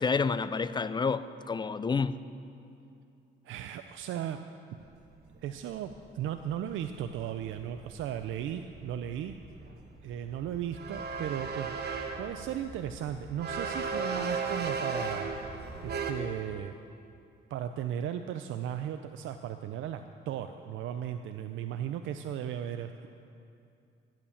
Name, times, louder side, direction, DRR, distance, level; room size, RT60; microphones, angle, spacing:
voice 1, 0.0-2.2, left 5 dB, 20° left, 14 dB, 0.5 m, -29 dB
voice 2, 3.4-4.4 5.4-9.4 10.0-11.8 12.2-15.3 15.8-16.7 17.5-23.1, right 10 dB, 80° right, 8 dB, 0.5 m, -36 dB
sound 1, 4.8-4.9 5.1-16.1, right 4 dB, 55° right, 1.3 m, -37 dB
13.5 x 8.7 x 7.1 m, 2.6 s
cardioid pair, 90°, 20 cm